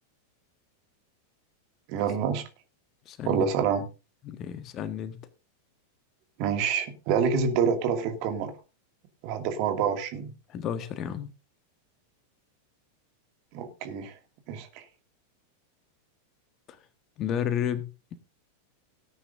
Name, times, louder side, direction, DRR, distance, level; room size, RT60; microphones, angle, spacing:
voice 1, 1.9-2.4 3.2-3.9 6.4-8.5 9.2-10.3 13.5-14.2 14.5-14.8, right 6 dB, 45° right, 2.3 m, -27 dB
voice 2, 3.0-3.5 4.2-5.2 10.5-11.3 16.7-16.8 17.2-18.1, left 9 dB, 35° left, 1.4 m, -32 dB
18.0 x 9.4 x 2.6 m
figure-of-eight pair, 90°, 0 cm